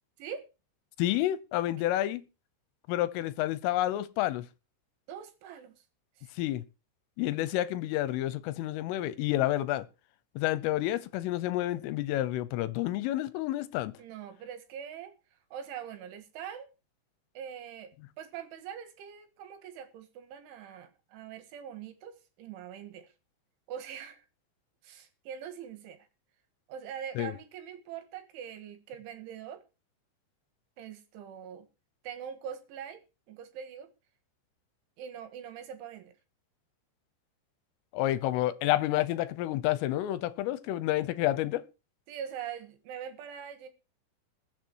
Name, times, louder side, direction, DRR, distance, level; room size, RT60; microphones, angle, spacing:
voice 1, 1.0-2.2 2.9-4.5 6.4-6.6 7.2-9.8 10.4-13.9 27.2-27.3 37.9-41.6, left 14 dB, 80° left, 3.3 m, -29 dB
voice 2, 5.1-5.8 6.2-6.3 14.0-15.2 15.5-16.7 17.4-17.9 18.2-23.1 23.7-24.3 24.8-26.1 26.7-29.6 30.8-31.7 32.0-33.9 35.0-36.1 42.1-43.7, right 8 dB, 70° right, 3.8 m, -43 dB
21.0 x 7.5 x 4.6 m
omnidirectional pair, 5.9 m